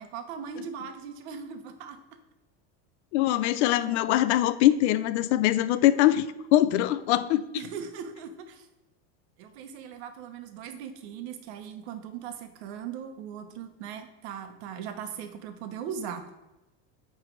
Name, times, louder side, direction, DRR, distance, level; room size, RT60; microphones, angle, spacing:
voice 1, 0.0-2.0 7.5-8.7 9.4-16.3, right 7 dB, 70° right, 8 dB, 1.0 m, -39 dB
voice 2, 3.1-7.4, left 13 dB, 85° left, 14 dB, 0.5 m, -23 dB
9.1 x 3.4 x 4.5 m, 1.0 s
supercardioid pair, 150°, 33 cm